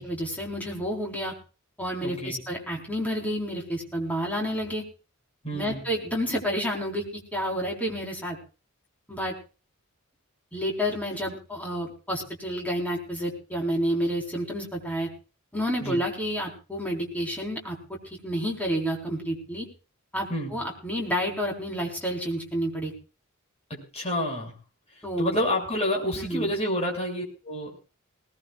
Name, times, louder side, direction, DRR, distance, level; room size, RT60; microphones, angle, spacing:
voice 1, 0.0-1.3 1.8-4.8 5.5-8.4 9.1-9.3 10.5-15.1 15.5-17.8 18.2-19.7 20.1-22.9 25.0-25.4 26.2-26.5, equal, 5° left, 0 dB, 4.3 m, -30 dB
voice 2, 2.0-2.4 5.4-5.8 15.8-16.0 20.3-20.5 23.7-24.5 25.2-27.8, equal, 30° left, 0 dB, 6.6 m, -29 dB
21.0 x 19.0 x 2.5 m, 0.34 s
head